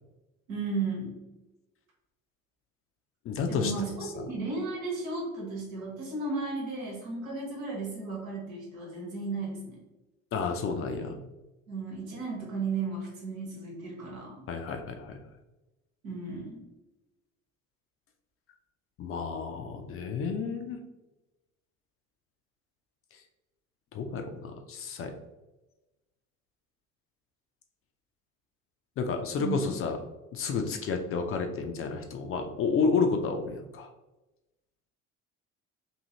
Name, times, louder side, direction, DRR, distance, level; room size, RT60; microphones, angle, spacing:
voice 1, 0.5-1.1 3.5-9.8 11.7-14.4 16.0-16.6 29.4-29.6, right 3 dB, 80° right, -3 dB, 1.1 m, -34 dB
voice 2, 3.3-3.7 4.0-4.3 10.3-11.2 14.5-15.2 19.0-20.8 23.9-25.1 29.0-30.0 30.3-33.9, left 5 dB, 35° left, 5 dB, 0.4 m, -31 dB
2.7 x 2.6 x 2.8 m, 1.0 s
figure-of-eight pair, 55°, 41 cm